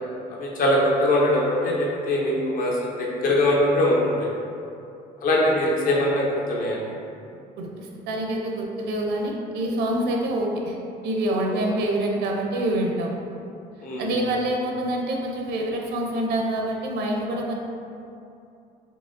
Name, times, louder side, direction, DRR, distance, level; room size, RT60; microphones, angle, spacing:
voice 1, 0.3-4.3 5.2-6.9 11.5-11.6 13.8-14.1, left 1 dB, 55° left, -4 dB, 0.9 m, -22 dB
voice 2, 7.6-10.7 11.0-13.2 14.0-17.5, right 1 dB, 85° right, 0 dB, 0.6 m, -26 dB
4.7 x 3.1 x 2.5 m, 2.6 s
cardioid pair, 110°, 17 cm